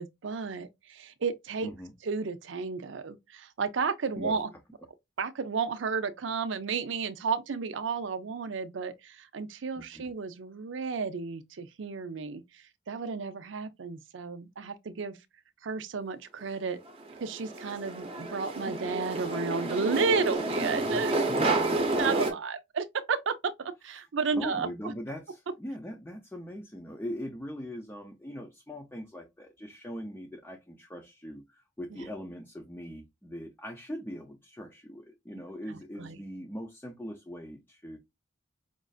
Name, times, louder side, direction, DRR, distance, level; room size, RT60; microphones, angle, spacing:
voice 1, 0.0-1.7 2.1-4.5 5.2-15.2 15.6-16.8 17.2-21.2 22.0-24.7 31.9-32.1 36.0-36.2, right 5 dB, 70° right, 0.5 m, -32 dB
voice 2, 1.6-1.9 4.2-4.4 9.7-10.0 21.3-22.1 24.3-38.0, equal, 10° left, 0.6 m, -41 dB
sound 1, 16.9-22.3, right 2 dB, 30° right, 0.8 m, -29 dB
5.2 x 2.5 x 2.3 m
head